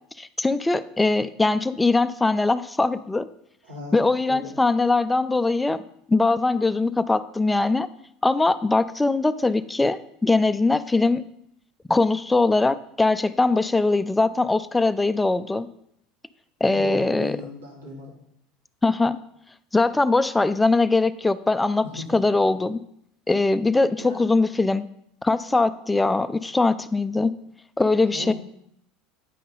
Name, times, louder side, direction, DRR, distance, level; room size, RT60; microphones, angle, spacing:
voice 1, 0.2-3.3 3.9-5.8 6.1-7.9 8.2-11.2 11.9-15.7 16.6-17.4 18.8-19.2 19.7-22.8 23.3-24.9 25.2-27.3 27.8-28.3, left 3 dB, 10° left, 12 dB, 0.4 m, -21 dB
voice 2, 3.6-4.5 16.7-18.2 21.8-22.2 24.0-24.3 28.1-28.3, left 1 dB, 85° right, -3 dB, 2.5 m, -37 dB
9.2 x 5.4 x 3.9 m, 0.73 s
hypercardioid pair, 80°, 0 cm